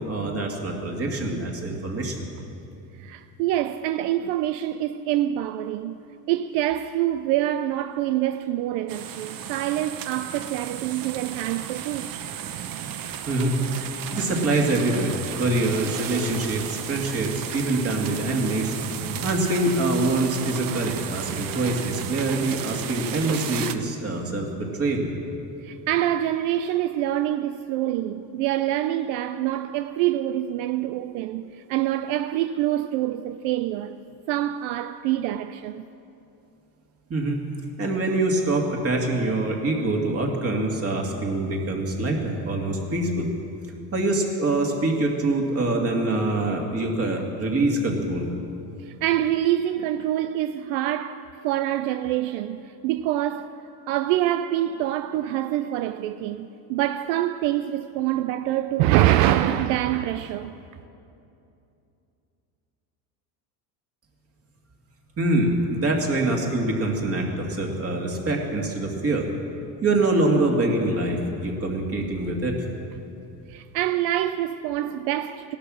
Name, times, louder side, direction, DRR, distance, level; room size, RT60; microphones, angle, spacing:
voice 1, 0.0-2.3 13.3-13.6 14.1-18.7 19.2-25.1 37.1-37.4 37.8-43.3 43.9-48.3 65.2-69.3 69.8-72.6, right 2 dB, 30° right, 2.4 m, -25 dB
voice 2, 3.0-6.0 6.3-12.1 25.6-34.0 34.3-35.8 48.8-53.6 53.9-60.5 73.5-75.6, right 13 dB, 75° right, 0.6 m, -25 dB
sound 1, 8.9-23.8, right 9 dB, 45° right, 0.9 m, -34 dB
17.0 x 12.0 x 6.3 m
supercardioid pair, 115°, 47 cm